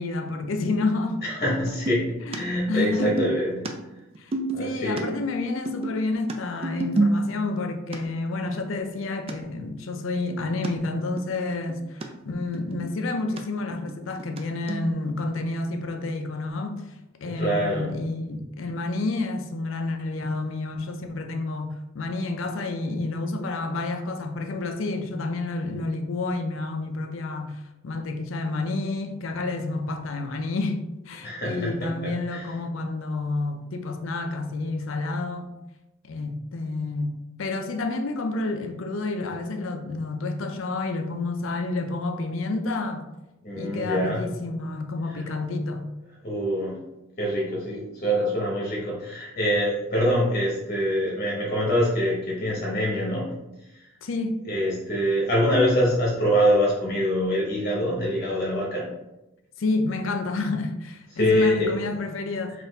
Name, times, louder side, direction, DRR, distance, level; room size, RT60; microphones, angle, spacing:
voice 1, 0.0-1.2 2.3-3.1 4.2-4.3 4.6-16.8 17.2-35.5 36.0-43.1 43.5-45.9 54.0-54.4 59.6-62.6, left 3 dB, 70° left, 0.5 m, -29 dB
voice 2, 1.2-3.7 4.5-5.1 17.3-17.9 31.2-32.6 43.4-44.2 45.1-45.2 46.2-46.8 47.2-53.3 54.4-58.9 61.1-61.8 62.6-62.7, equal, 40° left, 0.9 m, -25 dB
sound 1, 1.7-2.0 2.3-2.4 2.7-5.0 5.3-7.6 7.9-8.0 8.5-8.6 9.0-9.1 9.3-9.4 9.6-10.7 11.2-11.3 11.5-12.1 12.4-13.4 13.7-14.4 14.7-15.0 15.4-15.5 16.1-16.2, right 2 dB, 30° right, 0.3 m, -29 dB
4.1 x 2.6 x 3.9 m
head